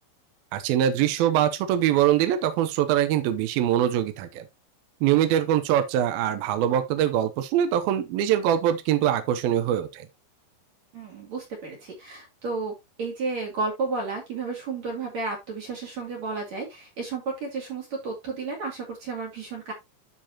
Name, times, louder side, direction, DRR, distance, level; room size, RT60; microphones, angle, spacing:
voice 1, 0.5-4.5 5.0-10.1, right 11 dB, 80° right, 2.1 m, -23 dB
voice 2, 10.9-19.7, right 4 dB, 45° right, 3.1 m, -32 dB
12.5 x 4.5 x 2.9 m
omnidirectional pair, 5.4 m